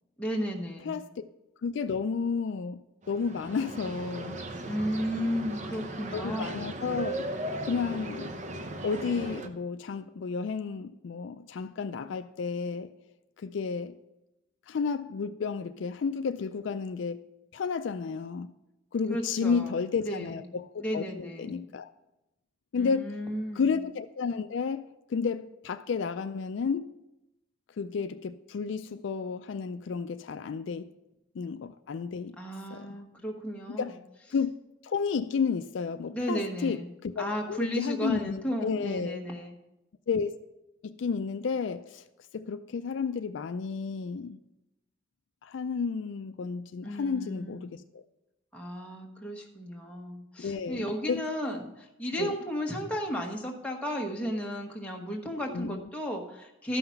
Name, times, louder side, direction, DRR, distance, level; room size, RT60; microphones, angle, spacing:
voice 1, 0.2-1.0 4.6-6.6 19.1-19.7 20.0-20.5 20.8-21.6 22.8-23.7 32.4-34.0 36.1-36.9 37.2-39.6 46.8-47.7 48.5-56.8, equal, 5° left, 1.2 m, -34 dB
voice 2, 0.8-1.2 1.6-2.8 3.1-4.4 6.1-7.3 7.6-8.3 8.8-12.9 13.4-14.0 14.7-17.2 17.5-18.5 18.9-21.9 22.7-23.2 23.6-24.8 25.1-26.9 27.8-30.9 31.4-32.4 32.7-33.0 33.7-34.0 34.3-34.5 34.8-39.2 40.1-40.4 40.8-42.0 42.3-44.4 45.4-48.0 50.4-51.2 52.2-52.3 55.5-55.8, left 5 dB, 60° left, 0.3 m, -32 dB
sound 1, 3.0-9.5, right 2 dB, 35° right, 0.7 m, -37 dB
12.5 x 5.8 x 5.7 m
head